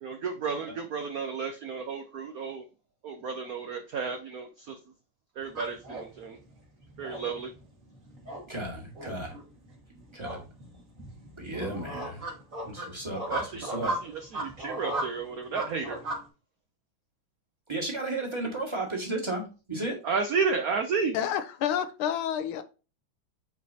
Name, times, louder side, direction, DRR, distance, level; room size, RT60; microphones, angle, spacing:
voice 1, 0.0-2.6 3.0-4.7 5.4-6.4 7.0-7.5 11.6-12.0 13.3-16.0 20.0-21.2, right 5 dB, 70° right, 6 dB, 0.8 m, -32 dB
sound 1, 5.4-16.2, right 1 dB, 40° right, 2.2 m, -37 dB
voice 2, 8.5-9.3 10.1-10.4 11.4-12.2 12.6-14.1 17.7-19.4 19.7-20.0, right 2 dB, 15° right, -2 dB, 1.6 m, -34 dB
voice 3, 21.1-22.6, left 9 dB, 80° left, 11 dB, 1.4 m, -29 dB
8.2 x 4.4 x 2.8 m, 0.32 s
omnidirectional pair, 2.4 m